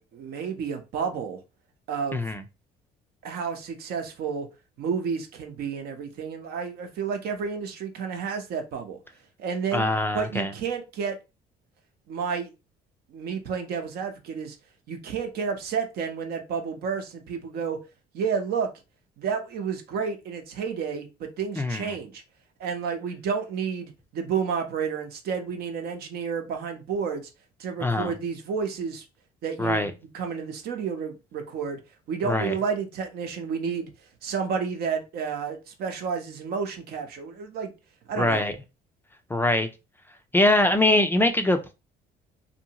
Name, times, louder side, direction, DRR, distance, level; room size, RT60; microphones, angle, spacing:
voice 1, 0.1-1.4 1.9-2.3 3.2-4.5 4.8-9.0 9.4-9.9 10.1-11.2 12.1-12.5 13.1-14.6 14.9-17.8 18.1-18.7 19.2-22.2 22.6-27.3 27.6-29.1 29.4-29.8 30.1-31.8 32.1-33.9 34.2-37.7 38.1-38.4, right 6 dB, 70° right, 0.7 m, -30 dB
voice 2, 9.7-10.5 21.6-21.9 27.8-28.1 29.6-29.9 32.2-32.5 38.2-38.5 39.3-39.7 40.3-41.7, left 1 dB, 10° left, 0.3 m, -23 dB
2.7 x 2.6 x 2.8 m
cardioid pair, 110°, 17 cm